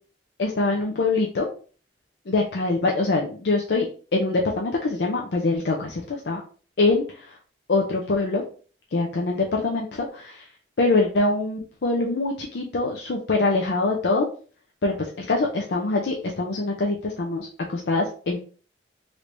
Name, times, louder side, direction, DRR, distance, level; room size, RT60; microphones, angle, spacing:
voice 1, 0.4-1.5 2.3-3.9 4.1-6.4 6.8-7.3 7.7-8.4 8.9-10.5 10.8-14.3 14.8-18.4, left 3 dB, 70° left, 0 dB, 0.5 m, -24 dB
3.3 x 3.1 x 2.6 m, 0.39 s
head